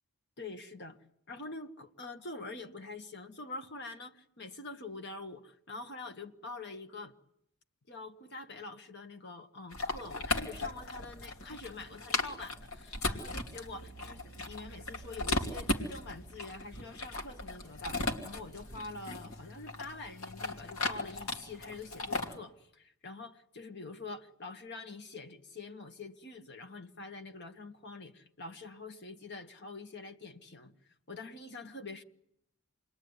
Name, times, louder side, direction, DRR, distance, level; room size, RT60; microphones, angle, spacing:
voice 1, 0.4-1.0 1.3-7.1 7.9-30.7 31.1-32.0, left 3 dB, 50° left, 1.8 m, -45 dB
sound 1, 9.7-22.4, left 2 dB, 70° left, 3.0 m, -37 dB
28.0 x 22.0 x 9.8 m
head